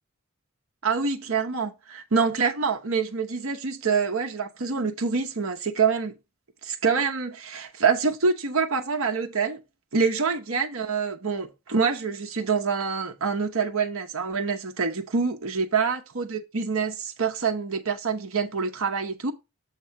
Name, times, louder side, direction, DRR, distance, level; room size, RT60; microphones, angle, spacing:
voice 1, 0.8-6.1 6.6-9.6 9.9-19.3, right 5 dB, 75° right, 0.9 m, -26 dB
7.5 x 3.1 x 5.7 m
head